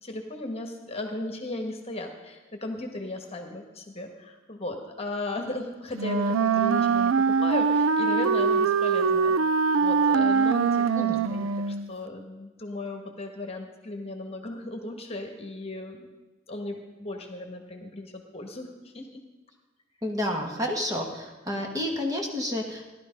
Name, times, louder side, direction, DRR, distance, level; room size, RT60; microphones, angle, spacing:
voice 1, 0.0-16.1 16.5-19.2, left 2 dB, 30° left, 3 dB, 1.5 m, -36 dB
Wind instrument woodwind instrument, 5.9-11.9, right 5 dB, 85° right, 0.5 m, -23 dB
voice 2, 20.0-22.9, left 1 dB, 20° right, 0 dB, 1.7 m, -30 dB
16.0 x 11.5 x 5.3 m, 1.2 s
head